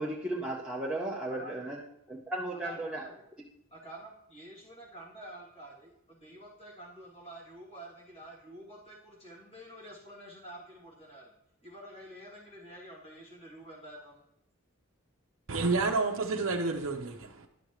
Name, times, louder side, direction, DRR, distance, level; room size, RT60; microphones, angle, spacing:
voice 1, 0.0-1.8 2.1-3.0, right 1 dB, 5° right, 0.7 m, -35 dB
voice 2, 1.3-1.8 2.5-3.1 3.7-11.3 11.6-14.2, right 1 dB, 30° left, 2.7 m, -49 dB
voice 3, 15.5-17.5, right 3 dB, 75° right, 0.7 m, -29 dB
10.5 x 6.5 x 3.1 m
head